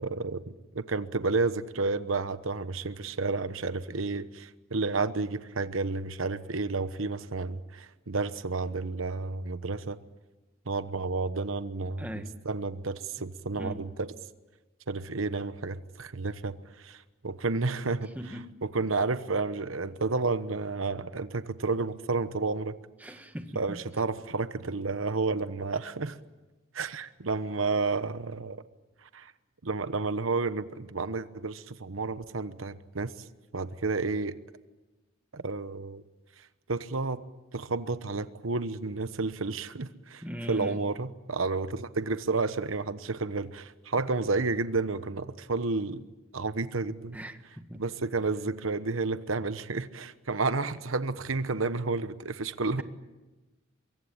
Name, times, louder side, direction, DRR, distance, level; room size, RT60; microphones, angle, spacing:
voice 1, 0.0-10.0 10.7-12.1 12.4-14.1 14.9-18.1 18.6-22.8 23.5-26.2 26.7-28.6 29.1-29.3 29.6-33.1 33.5-34.4 35.3-36.0 36.7-37.2 37.5-40.2 40.5-46.0 46.3-47.2 47.8-52.8, right 3 dB, 85° right, 1.1 m, -31 dB
voice 2, 12.0-12.3 13.6-13.8 18.1-18.5 23.0-23.8 40.2-40.8 47.1-47.8, equal, 10° right, 1.7 m, -39 dB
25.0 x 23.0 x 8.8 m
head